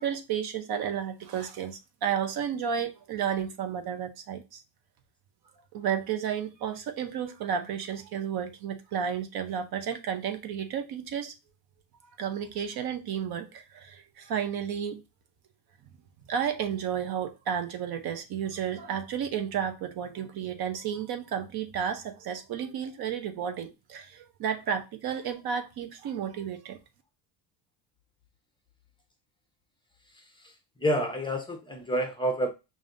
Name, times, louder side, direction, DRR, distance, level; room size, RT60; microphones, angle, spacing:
voice 1, 0.0-4.6 5.7-11.3 12.2-15.0 16.3-26.8, right 8 dB, 55° right, 0.7 m, -32 dB
voice 2, 30.1-32.5, equal, 10° left, 0.7 m, -29 dB
5.1 x 2.6 x 2.5 m
cardioid pair, 135°, 45 cm